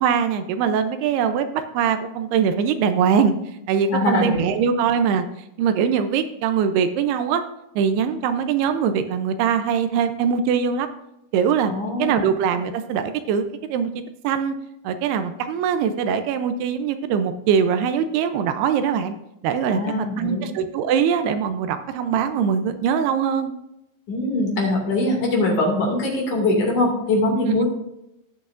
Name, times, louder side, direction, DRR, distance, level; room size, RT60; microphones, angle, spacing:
voice 1, 0.0-3.3 3.7-5.3 5.6-7.4 7.8-10.9 11.3-11.7 12.0-13.4 13.7-13.9 14.2-14.6 14.8-19.2 19.4-19.8 20.2-23.5 27.5-27.6, right 7 dB, 80° right, 9 dB, 2.6 m, -22 dB
voice 2, 3.9-4.5 11.7-12.3 19.7-20.5 24.1-27.6, left 2 dB, 55° left, -2 dB, 3.3 m, -22 dB
18.5 x 6.2 x 2.5 m, 0.84 s
omnidirectional pair, 4.6 m